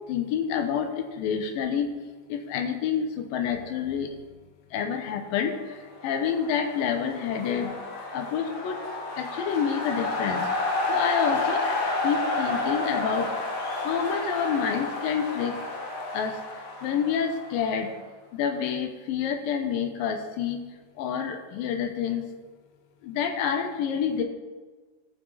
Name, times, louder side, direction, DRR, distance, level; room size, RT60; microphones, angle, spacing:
voice 1, 0.1-1.9 2.3-4.1 4.7-7.8 8.1-8.8 9.2-10.5 10.9-13.3 13.8-15.6 16.1-16.4 16.8-17.9 18.3-20.6 21.0-22.3 23.0-24.2, left 7 dB, 85° left, 5 dB, 2.7 m, -28 dB
sound 1, 6.0-17.9, left 2 dB, 60° left, 2.6 m, -30 dB
17.5 x 6.0 x 4.1 m, 1.4 s
omnidirectional pair, 4.0 m